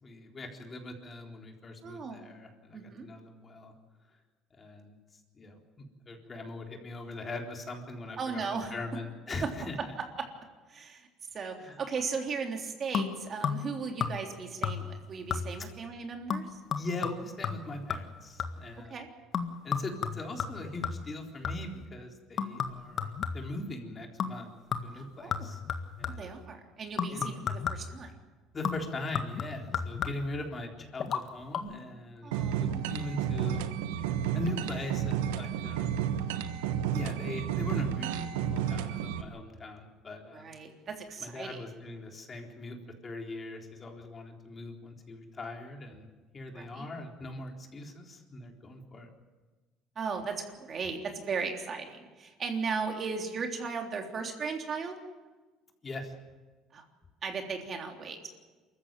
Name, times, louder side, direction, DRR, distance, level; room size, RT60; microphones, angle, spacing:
voice 1, 0.0-3.7 4.5-4.9 5.3-10.0 11.6-11.8 16.8-19.0 19.6-24.5 24.8-25.6 26.0-26.4 27.1-27.3 28.5-32.3 32.6-33.6 34.3-35.9 36.9-40.5 41.2-42.8 43.0-46.1 46.3-49.1 55.8-56.1, left 2 dB, 35° left, 2 dB, 3.9 m, -41 dB
voice 2, 1.8-2.3 2.7-3.1 8.2-8.7 10.2-10.3 10.7-16.6 18.9-19.1 24.9-25.5 26.2-28.1 32.2-32.8 35.4-35.5 40.3-41.6 46.5-46.9 49.9-54.9 56.7-56.8 57.2-58.3, right 5 dB, 45° right, 3 dB, 3.4 m, -37 dB
sound 1, 12.9-13.7 14.0-14.4 14.6-15.0 15.3-15.7 16.3-18.7 19.3-21.8 22.4-23.6 24.2-24.4 24.7-26.4 27.0-28.0 28.6-30.4 31.0-31.2 31.5-31.6, left 6 dB, 50° left, 1.8 m, -34 dB
sound 2, 32.3-39.2, right 9 dB, 90° right, 1.2 m, -31 dB
24.0 x 14.5 x 9.2 m, 1.3 s
supercardioid pair, 80°, 0 cm